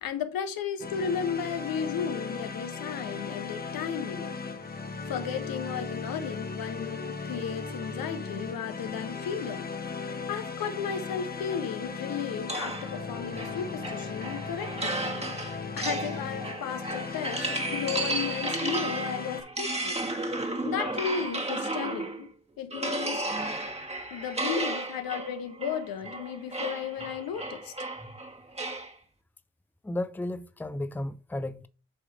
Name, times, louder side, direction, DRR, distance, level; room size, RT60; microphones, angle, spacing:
voice 1, 0.0-4.3 5.0-9.7 10.0-15.0 15.8-20.0 20.4-22.3 22.6-23.2 24.1-27.7, left 7 dB, 75° left, 1.1 m, -34 dB
sound 1, 0.8-19.4, left 4 dB, 25° left, 1.2 m, -37 dB
sound 2, 12.5-22.3 22.7-28.9, right 2 dB, 15° right, 1.5 m, -33 dB
voice 2, 29.8-31.7, left 1 dB, 5° left, 0.6 m, -33 dB
8.5 x 3.3 x 4.9 m
supercardioid pair, 45°, 35 cm